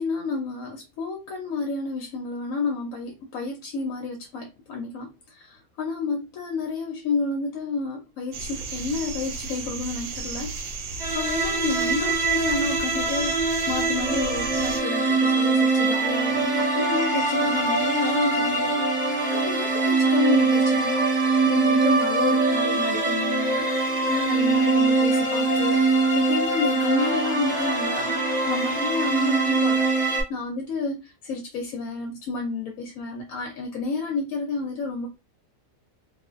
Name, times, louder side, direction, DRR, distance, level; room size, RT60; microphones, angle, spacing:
voice 1, 0.0-10.7 11.1-18.8 19.1-28.2 28.5-35.1, left 4 dB, 70° left, 0.9 m, -30 dB
sound 1, 8.3-14.8, right 4 dB, 80° right, 1.2 m, -34 dB
sound 2, 11.0-30.2, right 3 dB, 5° right, 0.7 m, -23 dB
2.5 x 2.4 x 2.4 m
omnidirectional pair, 1.7 m